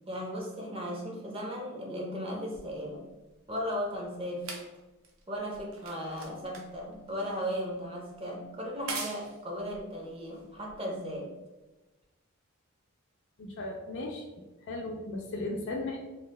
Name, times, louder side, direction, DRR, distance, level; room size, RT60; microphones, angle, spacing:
voice 1, 0.1-3.0 3.5-4.6 5.3-11.3, equal, 25° right, -1 dB, 0.6 m, -36 dB
sound 1, 2.5-11.2 12.0-12.1, right 4 dB, 70° right, 0.6 m, -45 dB
voice 2, 13.4-14.3 14.6-16.0, left 2 dB, 55° left, 0 dB, 0.4 m, -36 dB
2.9 x 2.4 x 3.2 m, 1.1 s
head